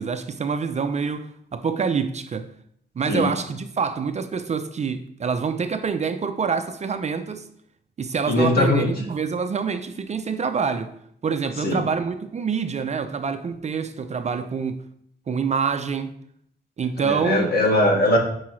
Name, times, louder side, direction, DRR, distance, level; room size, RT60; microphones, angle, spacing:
voice 1, 0.0-2.5 3.0-7.4 8.0-10.9 11.2-14.8 15.3-16.1 16.8-17.5, right 5 dB, 35° right, 0.5 m, -26 dB
voice 2, 8.3-8.9 11.6-11.8 17.0-18.2, left 1 dB, 50° left, 1.9 m, -20 dB
9.9 x 4.7 x 3.2 m
cardioid pair, 110°, 20 cm